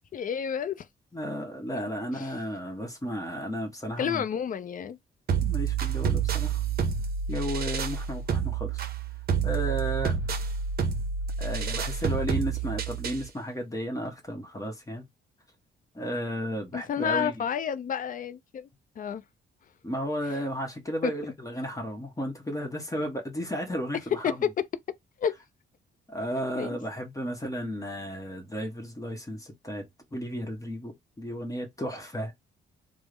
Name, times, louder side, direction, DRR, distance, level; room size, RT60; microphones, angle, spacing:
voice 1, 0.1-0.9 2.1-2.3 4.0-5.0 16.7-18.7 19.0-19.2 21.0-21.1 24.2-24.3 25.2-25.3 26.6-26.8, left 7 dB, 45° left, 0.4 m, -30 dB
voice 2, 1.1-4.2 5.4-6.6 7.3-8.9 9.4-10.2 11.4-15.1 15.9-17.4 19.8-24.4 26.1-32.3, equal, 15° left, 1.0 m, -34 dB
sound 1, 5.3-13.3, right 6 dB, 50° right, 0.6 m, -29 dB
3.4 x 2.0 x 3.1 m
cardioid pair, 90°, 20 cm